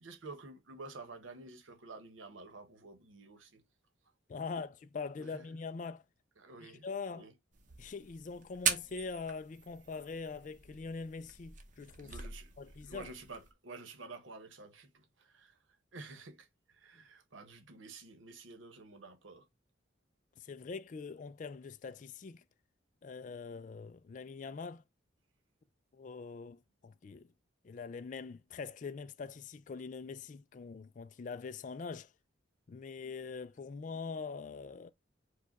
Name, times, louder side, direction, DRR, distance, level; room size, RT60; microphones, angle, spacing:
voice 1, 0.0-3.6 5.2-5.5 6.4-6.9 7.1-7.3 12.0-12.5 12.9-15.6 15.9-19.5, right 3 dB, 90° right, 1.0 m, -50 dB
voice 2, 4.3-6.0 6.6-7.3 7.8-12.2 12.6-13.1 17.0-17.1 20.4-22.4 23.0-24.8 25.9-27.3 27.6-32.1 32.7-34.9, left 4 dB, 40° left, 0.3 m, -43 dB
sound 1, 7.5-13.5, right 7 dB, 40° right, 0.7 m, -41 dB
4.8 x 2.3 x 4.5 m
head